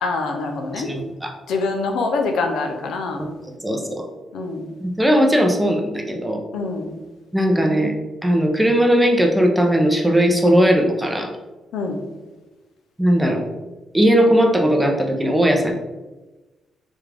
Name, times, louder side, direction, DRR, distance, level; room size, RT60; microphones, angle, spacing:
voice 1, 0.0-0.9 1.5-3.2 4.3-4.7 6.5-6.9 11.7-12.0, left 3 dB, 85° left, 4 dB, 0.5 m, -24 dB
voice 2, 0.8-1.3 3.6-4.0 4.8-6.4 7.3-7.9 8.2-11.3 13.0-13.4 13.9-15.7, equal, 5° right, 2 dB, 0.5 m, -18 dB
3.4 x 2.4 x 3.3 m, 1.1 s
cardioid pair, 100°, 0 cm